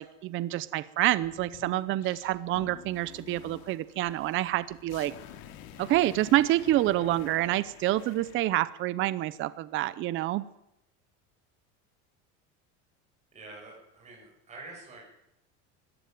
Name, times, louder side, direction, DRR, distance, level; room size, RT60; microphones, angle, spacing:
voice 1, 0.0-5.1 5.8-10.4, right 15 dB, 40° right, 16 dB, 0.7 m, -27 dB
sound 1, 1.1-8.5, left 10 dB, 75° left, 2.5 m, -49 dB
voice 2, 13.3-15.1, right 2 dB, 20° right, -2 dB, 7.7 m, -47 dB
20.0 x 15.0 x 9.2 m, 0.85 s
cardioid pair, 160°, 32 cm